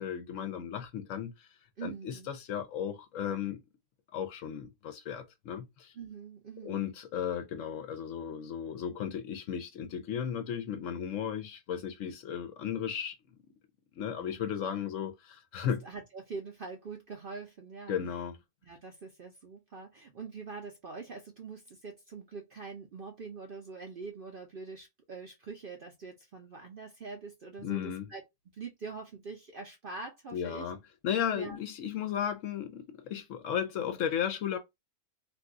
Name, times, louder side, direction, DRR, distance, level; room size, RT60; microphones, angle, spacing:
voice 1, 0.0-1.5 1.8-3.6 4.1-5.9 6.6-13.2 14.0-15.8 17.9-18.4 27.6-28.1 30.3-30.8 31.0-34.6, left 8 dB, 70° left, 0.9 m, -35 dB
voice 2, 1.8-2.3 5.9-6.8 14.2-14.4 15.8-18.0 18.6-28.2 28.5-30.7 31.3-31.6, right 4 dB, 55° right, 0.6 m, -44 dB
2.6 x 2.3 x 3.6 m
omnidirectional pair, 1.5 m